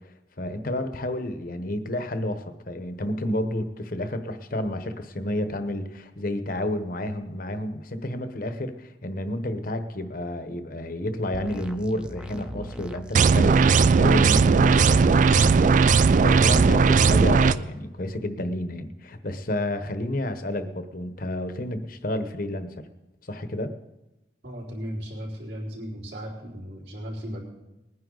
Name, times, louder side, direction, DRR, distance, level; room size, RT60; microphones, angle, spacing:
voice 1, 0.4-15.8 16.2-22.7 23.3-23.7, left 1 dB, 55° left, 9 dB, 1.1 m, -30 dB
sound 1, 11.3-16.3, right 1 dB, 5° right, 0.6 m, -40 dB
sound 2, 13.1-17.5, right 5 dB, 45° right, 0.4 m, -17 dB
voice 2, 24.4-27.4, equal, 75° right, -5 dB, 4.2 m, -36 dB
20.5 x 9.9 x 4.0 m, 0.99 s
head